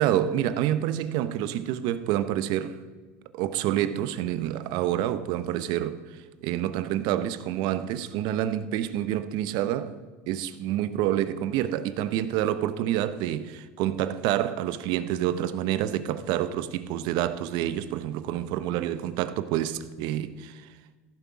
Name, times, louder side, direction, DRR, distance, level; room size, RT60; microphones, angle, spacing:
voice 1, 0.0-2.8 3.3-10.0 10.3-20.6, right 12 dB, 65° right, 0.7 m, -28 dB
15.5 x 6.9 x 4.8 m
supercardioid pair, 90°, 8 cm